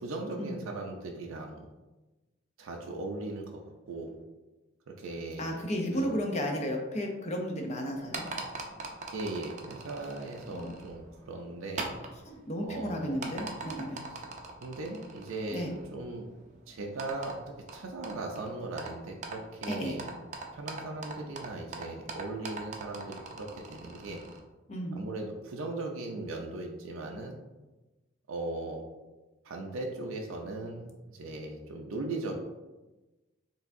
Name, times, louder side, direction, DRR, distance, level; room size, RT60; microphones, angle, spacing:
voice 1, 0.0-1.6 2.6-4.1 4.9-5.6 5.9-6.2 9.1-11.9 12.6-13.3 14.6-16.3 16.7-20.1 20.5-24.2 25.0-27.4 28.3-28.8 29.4-32.3, right 2 dB, 90° right, 1 dB, 0.5 m, -38 dB
voice 2, 5.4-8.3 10.5-10.7 12.2-14.1 15.5-15.7 19.7-20.0 24.7-25.0, equal, 35° left, 2 dB, 0.5 m, -33 dB
sound 1, 7.9-24.4, right 3 dB, 35° right, 0.5 m, -43 dB
4.5 x 3.3 x 2.6 m, 1.1 s
head